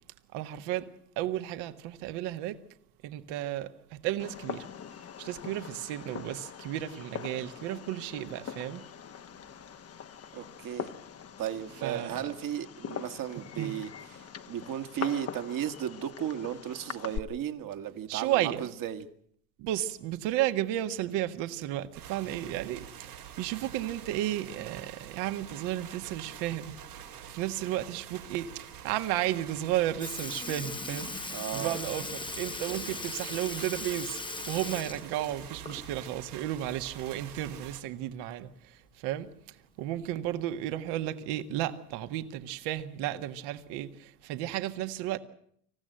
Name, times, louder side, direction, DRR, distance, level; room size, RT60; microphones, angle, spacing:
voice 1, 0.3-0.9 1.2-2.6 3.0-3.7 4.0-4.7 5.2-8.8 11.8-12.3 13.6-13.7 18.1-18.6 19.6-23.1 23.4-26.7 27.2-28.5 28.8-34.2 34.5-38.5 39.0-39.3 39.8-45.2, right 13 dB, 60° right, 1.7 m, -33 dB
Fireworks, 4.2-17.2, left 8 dB, 30° left, 1.2 m, -42 dB
voice 2, 10.3-10.9 11.4-19.1 31.3-31.8 32.7-32.9, right 10 dB, 45° right, 1.9 m, -35 dB
sound 1, 21.9-37.8, right 9 dB, 90° right, 4.5 m, -46 dB
Sink (filling or washing) / Liquid, 29.6-29.7 30.0-36.1 36.5-36.6 38.1-38.2 39.1-39.2 40.0-40.3 41.1-41.2, left 3 dB, 10° left, 0.9 m, -39 dB
26.5 x 15.0 x 7.8 m
hypercardioid pair, 75°, 45 cm